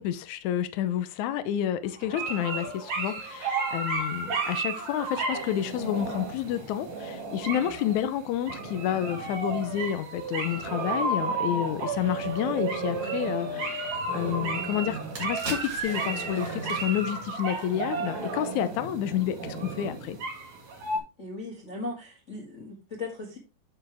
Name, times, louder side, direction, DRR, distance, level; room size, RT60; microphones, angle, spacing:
voice 1, 0.0-20.2, left 11 dB, 75° left, 1.9 m, -30 dB
sound 1, 2.0-21.0, right 3 dB, 70° right, 4.1 m, -32 dB
sound 2, 14.4-14.5 14.9-18.2 18.5-18.7, right 2 dB, 50° right, 3.6 m, -41 dB
voice 2, 21.2-23.4, left 2 dB, 30° left, 1.3 m, -38 dB
11.5 x 4.5 x 3.3 m
omnidirectional pair, 3.9 m